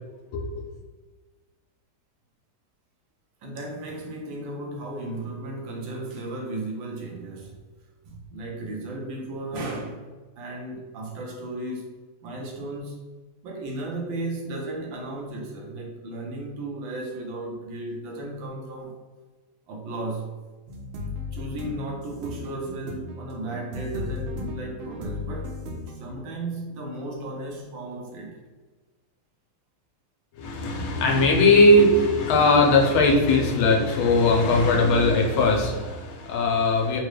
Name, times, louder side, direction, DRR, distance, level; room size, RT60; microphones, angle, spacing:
voice 1, 3.4-7.6 8.0-10.0 10.4-13.0 13.4-19.0 19.7-20.4 21.3-25.6 25.9-28.4, right 2 dB, 70° right, 0 dB, 1.3 m, -35 dB
sound 1, 20.7-26.0, left 2 dB, 90° right, 1.5 m, -35 dB
voice 2, 30.3-37.0, left 2 dB, 85° left, 0 dB, 1.5 m, -19 dB
3.9 x 2.2 x 3.2 m, 1.3 s
omnidirectional pair, 2.3 m